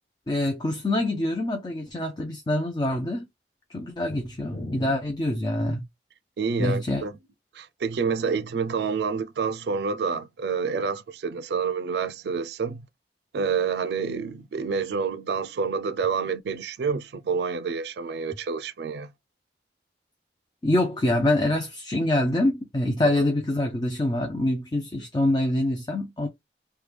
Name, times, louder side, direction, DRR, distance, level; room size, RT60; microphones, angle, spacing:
voice 1, 0.3-3.3 3.7-5.8 6.6-7.0 20.6-26.3, left 1 dB, 25° left, 0.4 m, -25 dB
voice 2, 6.4-7.1 7.5-12.8 13.3-19.1 23.0-23.2, right 5 dB, 70° right, 0.3 m, -28 dB
3.2 x 2.2 x 3.2 m
head